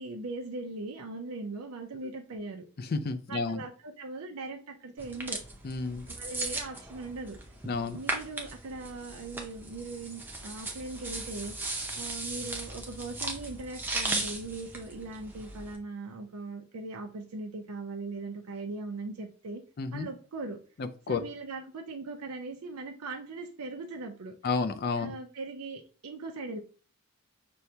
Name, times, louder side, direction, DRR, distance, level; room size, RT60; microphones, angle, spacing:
voice 1, 0.0-2.7 3.3-5.4 6.1-7.4 7.9-11.5 11.9-19.6 19.9-20.6 21.1-24.4 25.0-26.6, right 3 dB, 90° right, 2 dB, 0.5 m, -39 dB
voice 2, 2.8-3.6 5.6-6.1 7.7-8.0 19.8-20.1 20.8-21.2 24.4-25.1, left 4 dB, 45° left, 8 dB, 0.4 m, -31 dB
sound 1, 5.0-15.7, right 2 dB, 10° right, 0.6 m, -37 dB
6.2 x 2.2 x 2.7 m, 0.39 s
head